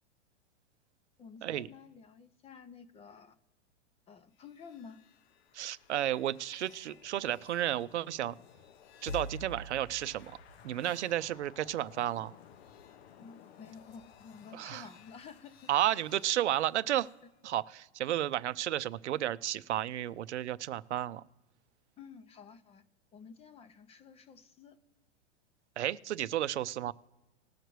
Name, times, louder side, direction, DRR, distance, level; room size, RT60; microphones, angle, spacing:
voice 1, 1.2-3.4 4.1-5.0 13.2-15.7 17.2-17.3 22.0-22.8 23.1-24.8, left 6 dB, 15° left, 12 dB, 0.6 m, -51 dB
sound 1, 4.4-17.2, left 3 dB, 65° left, 0.8 m, -51 dB
voice 2, 5.5-8.3 9.0-10.4 10.6-12.3 14.5-14.8 15.7-17.1 17.4-21.2 25.8-26.9, right 12 dB, 80° right, 15 dB, 0.6 m, -32 dB
20.0 x 6.6 x 3.1 m, 1.1 s
hypercardioid pair, 125°, 34 cm